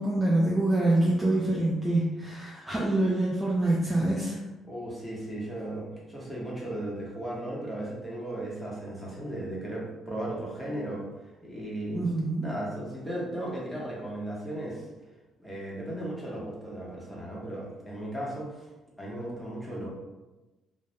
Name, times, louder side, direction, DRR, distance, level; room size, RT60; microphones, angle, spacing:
voice 1, 0.0-4.4 11.9-12.4, right 1 dB, 15° right, -5 dB, 0.4 m, -25 dB
voice 2, 4.6-11.0 11.4-12.1 12.4-14.8 15.4-18.7 19.0-19.9, right 1 dB, 5° left, -6 dB, 0.9 m, -36 dB
2.2 x 2.1 x 2.9 m, 1.1 s
cardioid pair, 90°, 0 cm